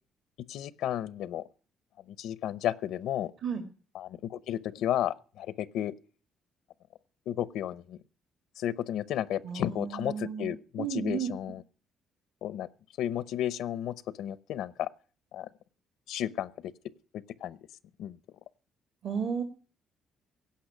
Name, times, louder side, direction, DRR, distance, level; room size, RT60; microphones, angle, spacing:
voice 1, 0.5-1.4 2.2-3.3 3.9-5.9 7.3-8.0 8.6-11.6 12.4-12.7 13.0-14.9 15.3-15.5 16.1-16.7 17.1-17.6 18.0-18.2, left 11 dB, 75° left, 0.6 m, -33 dB
voice 2, 9.4-11.3 19.0-19.4, right 7 dB, 50° right, 1.6 m, -33 dB
17.0 x 5.7 x 9.9 m
cardioid pair, 135°, 0 cm